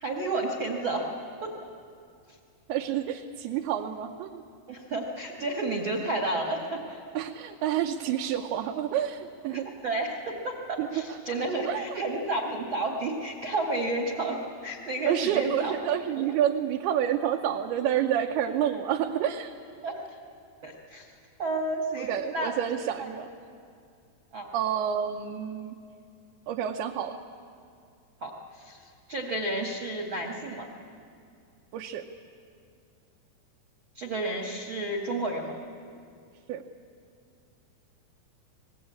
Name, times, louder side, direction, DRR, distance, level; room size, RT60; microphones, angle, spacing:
voice 1, 0.0-1.1 1.4-1.5 4.7-7.0 9.5-10.6 10.9-15.7 19.8-20.0 20.6-21.1 21.4-22.5 23.0-23.1 24.3-24.5 28.2-28.3 28.6-28.8 29.1-30.7 34.0-35.6, right 2 dB, 45° right, 1 dB, 1.7 m, -31 dB
voice 2, 2.7-4.4 7.1-9.7 10.8-11.2 11.6-12.0 15.1-19.5 22.0-23.3 24.5-25.8 26.5-27.2 31.7-32.0 36.5-36.6, right 10 dB, 75° right, 2 dB, 2.7 m, -29 dB
26.0 x 20.0 x 8.5 m, 2.4 s
omnidirectional pair, 4.8 m